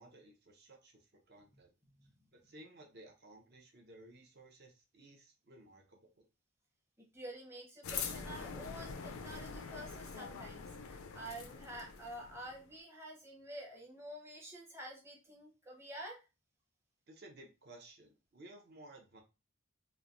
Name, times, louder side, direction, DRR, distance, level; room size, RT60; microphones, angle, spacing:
voice 1, 0.0-1.7 2.3-6.2 17.1-19.2, right 1 dB, 50° right, 2 dB, 0.7 m, -57 dB
voice 2, 7.1-16.2, right 1 dB, 10° right, -1 dB, 0.7 m, -49 dB
sound 1, 7.8-12.7, left 6 dB, 75° left, 0.4 m, -44 dB
3.1 x 2.2 x 2.5 m, 0.29 s
head